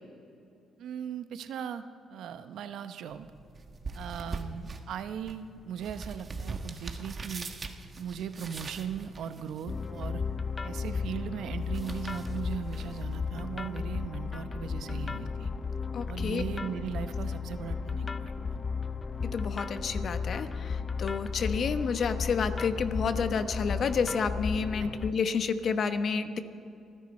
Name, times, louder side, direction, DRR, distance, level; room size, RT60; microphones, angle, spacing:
voice 1, 0.8-3.3 3.9-7.5 8.0-10.2 10.6-15.5 16.1-18.6 24.8-24.9, right 8 dB, 75° right, 10 dB, 0.8 m, -38 dB
sound 1, 3.1-14.1, right 3 dB, 35° right, 1.3 m, -43 dB
sound 2, 9.7-25.1, left 5 dB, 30° left, 0.6 m, -34 dB
voice 2, 15.9-16.4 19.3-26.4, left 5 dB, 55° left, 9 dB, 1.0 m, -30 dB
29.5 x 10.5 x 4.3 m, 2.6 s
cardioid pair, 90°, 0 cm